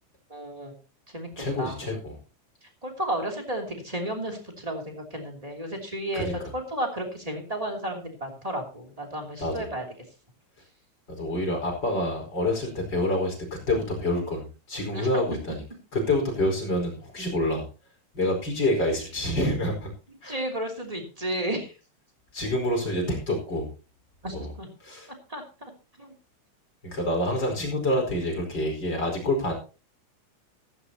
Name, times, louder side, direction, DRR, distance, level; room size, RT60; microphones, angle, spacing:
voice 1, 0.3-0.7 1.1-1.3 1.6-1.8 2.8-9.8 14.9-15.1 20.2-21.7 24.2-24.7 25.3-25.7 26.0-26.1, right 1 dB, 10° right, 2 dB, 1.8 m, -33 dB
voice 2, 1.4-2.1 6.1-6.3 9.4-9.7 11.1-15.6 15.9-17.6 18.1-19.9 20.2-20.4 22.3-23.7 24.3-24.5 24.8-25.1 26.8-29.5, left 1 dB, 25° left, 1 dB, 4.8 m, -27 dB
15.0 x 15.0 x 2.9 m, 0.34 s
omnidirectional pair, 5.4 m